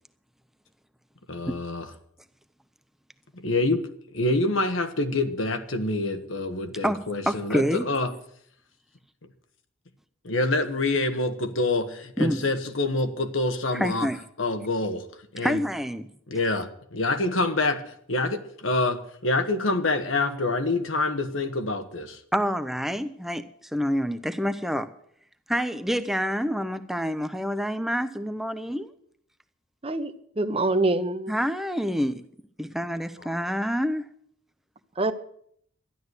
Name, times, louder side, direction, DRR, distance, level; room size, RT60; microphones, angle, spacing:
voice 1, 1.3-1.9 3.3-8.1 10.2-14.1 14.4-15.1 15.3-15.6 16.3-16.7 16.9-17.8 18.1-22.2 33.2-33.5, left 2 dB, 80° left, 1.5 m, -26 dB
voice 2, 7.3-7.9 12.2-12.5 13.7-14.2 15.4-16.1 22.3-23.4 23.7-24.9 25.5-28.9 31.3-32.2 32.6-34.1, equal, ahead, 0.7 m, -27 dB
voice 3, 29.8-31.3 35.0-35.1, right 2 dB, 30° right, 0.9 m, -25 dB
12.5 x 11.0 x 8.1 m
head